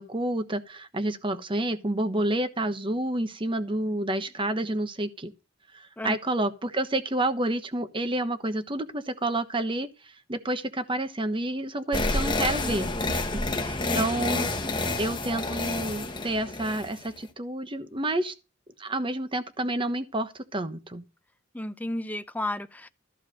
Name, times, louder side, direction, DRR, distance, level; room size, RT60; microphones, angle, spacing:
voice 1, 0.0-5.3 5.7-14.5 14.8-18.3 18.8-21.0, right 1 dB, 25° right, 1.1 m, -29 dB
sound 1, 11.9-17.2, left 2 dB, 25° left, 1.1 m, -29 dB
voice 2, 21.5-22.9, left 1 dB, 10° left, 0.5 m, -32 dB
14.0 x 4.8 x 6.4 m
head